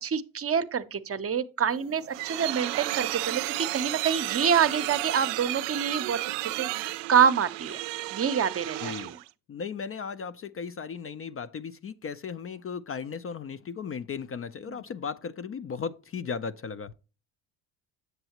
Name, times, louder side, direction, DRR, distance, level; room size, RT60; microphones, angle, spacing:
voice 1, 0.0-7.8 8.1-9.2 14.7-14.8, right 7 dB, 35° right, 0.7 m, -27 dB
sound 1, 1.7-9.3, right 19 dB, 75° right, 0.5 m, -33 dB
voice 2, 8.8-9.1 9.5-16.9, left 6 dB, 35° left, 0.5 m, -36 dB
8.0 x 6.9 x 2.9 m
hypercardioid pair, 60°, 43 cm